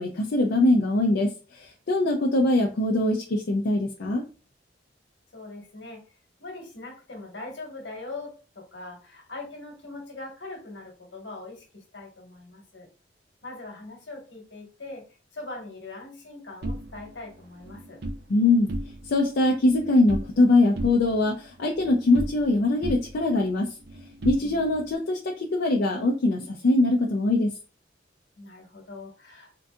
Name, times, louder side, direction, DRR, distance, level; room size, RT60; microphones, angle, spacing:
voice 1, 0.0-4.2 18.3-18.7 19.0-23.7 24.2-27.5, left 2 dB, 65° left, 0.5 m, -22 dB
voice 2, 5.3-6.0 6.4-12.9 13.4-15.1 15.3-18.0 24.4-24.6 28.4-29.5, left 2 dB, 80° left, 1.2 m, -41 dB
sound 1, 16.6-18.2 18.6-19.3 19.5-20.4 20.8-22.6 22.8-24.9, right 1 dB, 60° right, 0.5 m, -35 dB
3.8 x 2.6 x 2.3 m
head